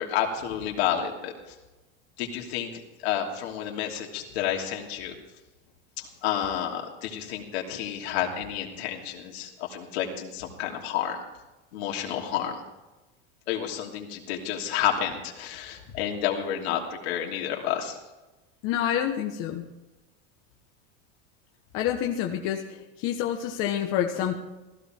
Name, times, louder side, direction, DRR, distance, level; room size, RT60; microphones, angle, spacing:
voice 1, 0.0-1.3 2.2-2.7 3.0-5.2 6.0-11.2 11.7-12.6 13.5-18.0, left 10 dB, 75° left, 1 dB, 2.9 m, -30 dB
voice 2, 18.6-19.7 21.7-24.4, left 10 dB, 40° left, 3 dB, 1.2 m, -28 dB
15.5 x 15.0 x 4.6 m, 1.1 s
supercardioid pair, 160°, 32 cm